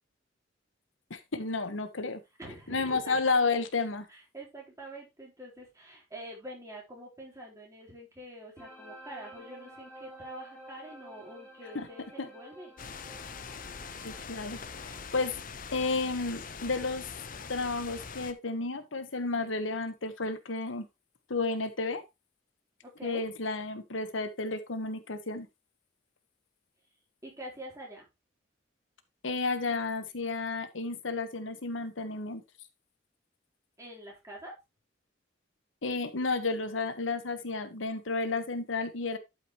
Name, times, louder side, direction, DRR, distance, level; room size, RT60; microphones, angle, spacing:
voice 1, 1.1-2.2 2.7-4.1 11.7-11.9 12.2-12.3 14.0-14.6 15.1-15.3 15.7-17.1 17.5-20.9 21.3-22.0 23.0-25.5 29.2-32.4 35.8-39.2, left 3 dB, 90° left, 10 dB, 1.2 m, -32 dB
voice 2, 2.4-3.2 4.1-12.7 22.8-23.2 27.2-28.0 33.8-34.5, right 1 dB, 15° right, -2 dB, 3.9 m, -46 dB
sound 1, 8.6-15.4, right 1 dB, 5° left, 3.6 m, -51 dB
sound 2, 12.8-18.3, left 5 dB, 45° left, 0.8 m, -43 dB
11.5 x 5.9 x 3.1 m, 0.23 s
head